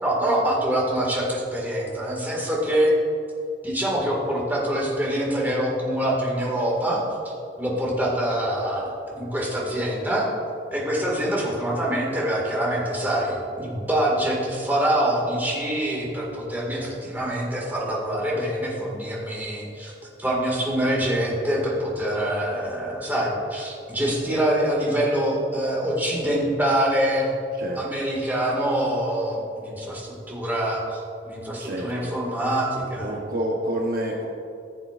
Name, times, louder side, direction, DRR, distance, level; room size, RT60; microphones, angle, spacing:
voice 1, 0.0-3.0 3.6-10.3 10.7-19.9 20.2-27.3 27.8-33.2, right 1 dB, 10° right, -4 dB, 1.9 m, -25 dB
voice 2, 31.6-32.1 33.0-34.3, right 1 dB, 50° right, -1 dB, 0.9 m, -28 dB
15.0 x 7.7 x 2.5 m, 2.6 s
head